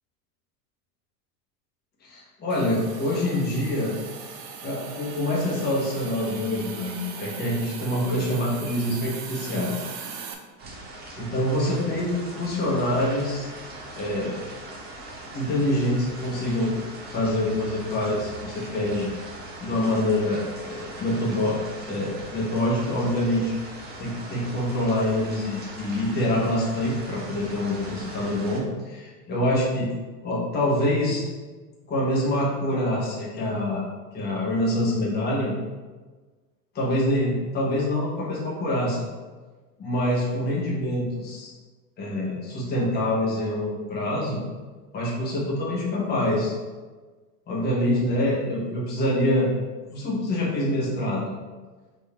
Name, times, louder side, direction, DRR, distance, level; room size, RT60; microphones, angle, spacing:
voice 1, 2.0-3.9 4.6-9.7 11.2-13.5 13.9-14.4 15.3-16.7 17.1-19.1 19.6-23.5 24.0-29.9 30.2-31.2 31.9-33.8 34.1-35.5 36.7-39.0 39.8-41.5 42.0-44.4 44.9-46.5 47.5-49.5 49.9-51.3, left 1 dB, 20° left, -5 dB, 1.1 m, -25 dB
Hiss, 2.5-10.3, right 6 dB, 85° right, 0.8 m, -39 dB
sound 1, 10.6-28.6, right 2 dB, 20° right, 0.8 m, -40 dB
4.1 x 3.0 x 4.2 m, 1.3 s
hypercardioid pair, 115°, 49 cm